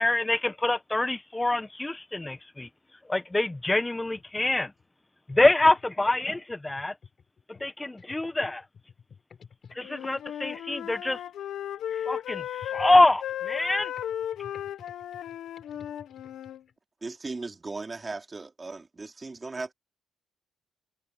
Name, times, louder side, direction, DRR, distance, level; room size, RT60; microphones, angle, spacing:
voice 1, 0.0-2.7 3.1-4.7 5.3-6.9 7.5-8.6 9.8-11.2 11.9-13.9, left 2 dB, 15° left, 1.2 m, -25 dB
voice 2, 9.1-9.8 10.1-10.2 12.7-12.8 14.3-14.7 15.1-15.2 15.7-16.4, left 6 dB, 50° left, 6.0 m, -51 dB
Wind instrument woodwind instrument, 9.8-16.6, left 10 dB, 75° left, 1.0 m, -35 dB
voice 3, 17.0-19.7, right 3 dB, 25° right, 3.7 m, -37 dB
cardioid pair, 90°, 0 cm